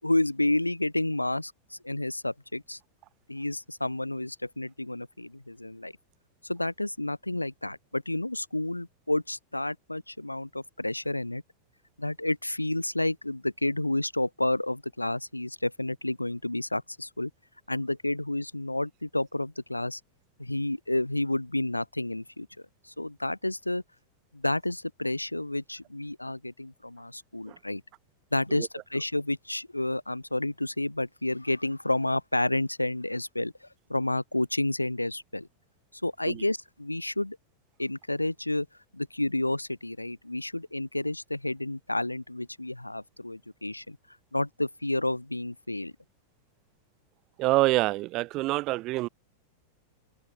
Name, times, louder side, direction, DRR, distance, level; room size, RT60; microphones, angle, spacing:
voice 1, 0.0-2.8 3.3-5.9 6.4-11.4 12.0-17.3 17.7-20.0 20.4-22.5 22.8-23.8 24.3-27.8 28.3-35.5 35.9-37.4 37.8-38.7 38.9-44.0 44.3-45.9, left 1 dB, 85° left, 3.9 m, -30 dB
voice 2, 47.4-49.1, right 19 dB, 40° right, 3.2 m, -26 dB
open air
figure-of-eight pair, 90°, 0 cm